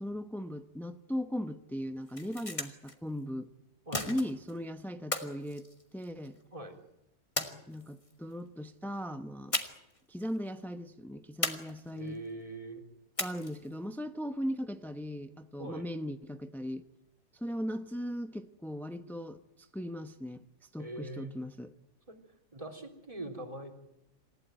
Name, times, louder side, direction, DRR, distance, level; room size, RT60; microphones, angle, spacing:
voice 1, 0.0-3.5 4.0-5.7 5.9-6.4 7.7-9.6 10.1-12.2 13.2-16.8 17.3-21.7, equal, ahead, 9 dB, 0.4 m, -38 dB
sound 1, 2.0-2.9 3.9-4.6 5.1-6.4 7.4-8.1 9.5-10.0 10.2-10.4 11.4-12.2 13.2-13.7, left 2 dB, 20° left, 2.1 m, -36 dB
voice 2, 11.9-12.8 15.6-15.9 20.8-21.4 22.1-22.2 22.5-23.7, right 2 dB, 20° right, 4 dB, 3.5 m, -42 dB
28.0 x 16.0 x 9.2 m, 0.90 s
omnidirectional pair, 1.7 m